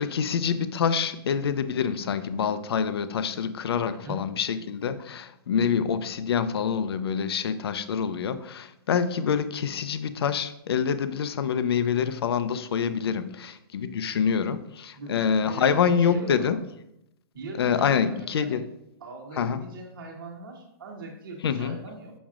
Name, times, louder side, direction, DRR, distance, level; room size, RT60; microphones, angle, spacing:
voice 1, 0.0-16.6 17.6-18.6 19.4-19.6 21.4-21.8, left 7 dB, 75° left, 12 dB, 0.5 m, -26 dB
voice 2, 3.8-4.2 14.9-16.6 17.3-18.6 19.0-22.1, right 2 dB, 60° right, 0 dB, 1.1 m, -40 dB
7.2 x 5.9 x 2.4 m, 0.80 s
hypercardioid pair, 175°, 13 cm